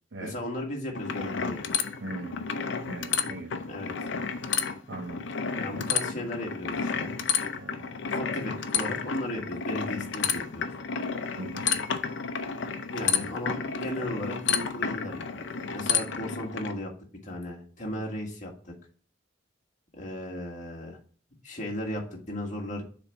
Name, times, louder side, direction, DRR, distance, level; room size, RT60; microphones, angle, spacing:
voice 1, 0.2-1.6 3.7-3.9 5.5-7.1 8.1-10.7 12.9-16.9 17.2-18.7 19.9-21.0 21.4-22.8, left 1 dB, 45° left, -1 dB, 1.7 m, -36 dB
sound 1, 0.9-16.7, left 6 dB, 75° left, 0.6 m, -31 dB
voice 2, 2.0-2.5 2.9-3.6 4.9-5.2 5.8-5.9 7.6-7.9 11.4-11.7, right 2 dB, 75° right, 3 dB, 0.8 m, -39 dB
7.0 x 3.5 x 4.1 m, 0.42 s
head